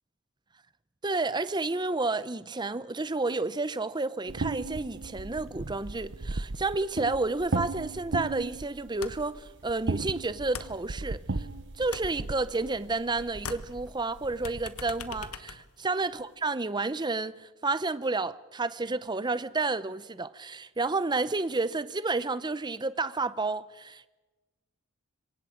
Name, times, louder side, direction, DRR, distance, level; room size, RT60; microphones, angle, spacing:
voice 1, 1.0-11.5 11.8-24.1, right 3 dB, 20° right, 0.7 m, -31 dB
sound 1, 4.3-15.3, right 3 dB, 55° right, 0.9 m, -37 dB
sound 2, 9.0-9.4 9.7-11.5 11.7-13.1 13.3-16.4, left 5 dB, 85° left, 1.4 m, -43 dB
26.5 x 24.0 x 5.2 m
head